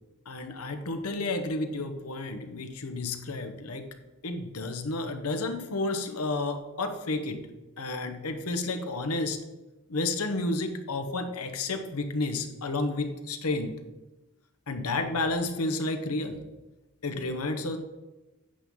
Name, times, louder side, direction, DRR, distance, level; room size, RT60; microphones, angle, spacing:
voice 1, 0.3-3.9 4.2-7.4 7.8-9.4 9.9-13.7 14.7-16.4 17.0-17.8, left 2 dB, 75° left, 7 dB, 1.0 m, -31 dB
8.9 x 3.8 x 7.1 m, 1.1 s
head